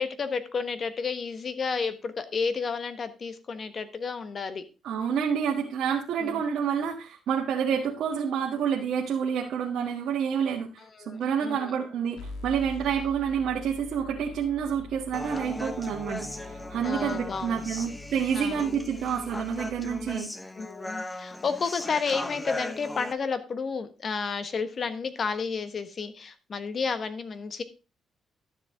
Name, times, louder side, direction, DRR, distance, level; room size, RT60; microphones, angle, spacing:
voice 1, 0.0-4.6 6.2-6.4 10.9-11.7 16.8-17.8 18.3-18.7 20.5-27.6, left 5 dB, 45° left, 11 dB, 1.3 m, -31 dB
voice 2, 4.8-20.3, right 7 dB, 75° right, -1 dB, 1.6 m, -28 dB
sound 1, 12.2-20.2, left 2 dB, 85° left, 2.0 m, -44 dB
Human voice, 15.1-23.1, left 1 dB, 10° left, 0.8 m, -38 dB
12.0 x 7.4 x 3.8 m, 0.32 s
cardioid pair, 90°, 0 cm